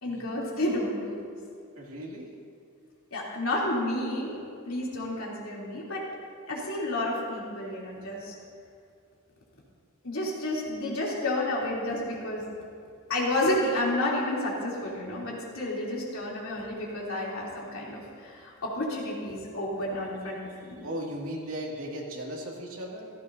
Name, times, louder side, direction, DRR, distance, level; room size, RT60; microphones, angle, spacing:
voice 1, 0.0-1.2 3.1-6.0 6.5-8.3 10.0-12.5 13.1-20.8, left 1 dB, 65° left, -5 dB, 3.2 m, -31 dB
voice 2, 1.8-2.3 20.8-23.1, equal, 70° right, -2 dB, 2.4 m, -37 dB
16.0 x 15.5 x 2.8 m, 2.3 s
head